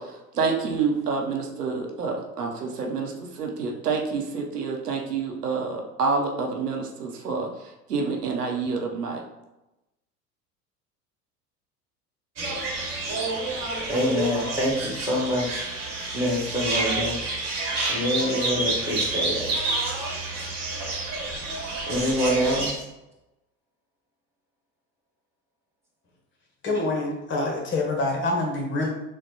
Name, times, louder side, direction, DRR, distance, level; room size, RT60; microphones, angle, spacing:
voice 1, 0.0-9.2, right 4 dB, 80° right, 1 dB, 0.8 m, -28 dB
sound 1, 12.4-22.7, right 2 dB, 35° right, 1.3 m, -29 dB
voice 2, 13.9-15.6 16.1-17.2 17.9-19.5 21.9-22.8, equal, 5° right, -5 dB, 1.3 m, -26 dB
voice 3, 26.6-28.9, left 2 dB, 25° left, 0 dB, 0.8 m, -26 dB
6.3 x 2.2 x 2.9 m, 0.95 s
figure-of-eight pair, 75°, 46 cm